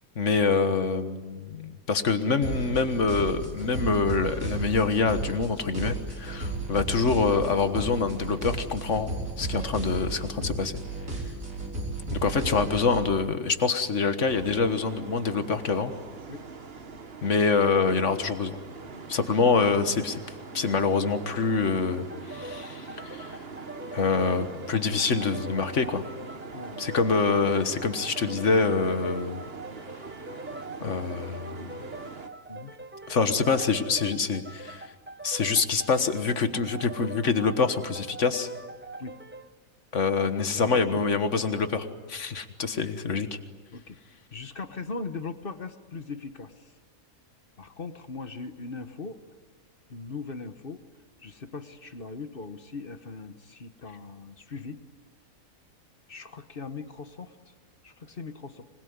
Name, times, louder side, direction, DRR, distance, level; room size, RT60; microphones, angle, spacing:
voice 1, 0.2-9.1 9.4-10.8 12.1-15.9 17.2-18.6 19.1-20.2 20.5-23.4 23.9-26.0 26.8-29.5 30.8-31.5 33.1-34.9 35.2-38.5 39.9-43.3, left 4 dB, 60° left, 9 dB, 1.8 m, -25 dB
sound 1, 2.4-13.1, right 2 dB, 70° right, 4.8 m, -34 dB
sound 2, 14.3-32.3, right 4 dB, 45° right, 1.6 m, -43 dB
sound 3, 22.1-39.5, right 2 dB, 15° right, 0.5 m, -43 dB
voice 2, 26.5-26.8 31.6-31.9 32.5-32.7 39.0-39.2 40.7-41.1 43.7-44.0 44.3-46.5 47.6-49.2 49.9-50.8 51.2-54.8 56.1-57.3 57.8-58.6, left 4 dB, 40° left, 10 dB, 1.3 m, -39 dB
26.0 x 21.0 x 9.6 m, 1.4 s
omnidirectional pair, 1.5 m